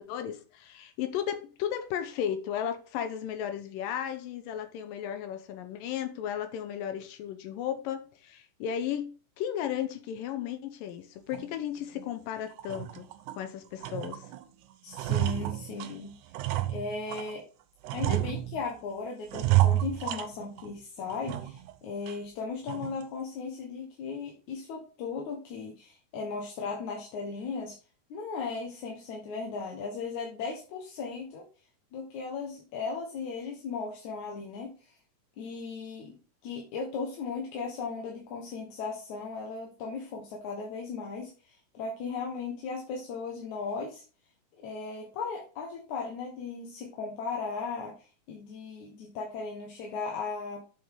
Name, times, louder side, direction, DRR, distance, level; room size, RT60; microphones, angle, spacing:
voice 1, 0.0-13.1 13.4-14.3, left 9 dB, 80° left, 2.4 m, -35 dB
sound 1, 11.3-11.5 12.0-12.1 12.5-13.4 13.8-14.4 14.7-17.4 17.8-18.8 19.3-20.8 21.1-21.7 22.1-22.2 22.7-23.0, right 15 dB, 75° right, 1.9 m, -30 dB
voice 2, 14.8-16.1 16.7-17.4 17.9-27.8 28.1-31.5 31.9-35.0 35.4-36.2 36.4-44.0 44.6-50.6, left 4 dB, 65° left, 2.3 m, -37 dB
7.7 x 5.5 x 3.7 m
omnidirectional pair, 4.1 m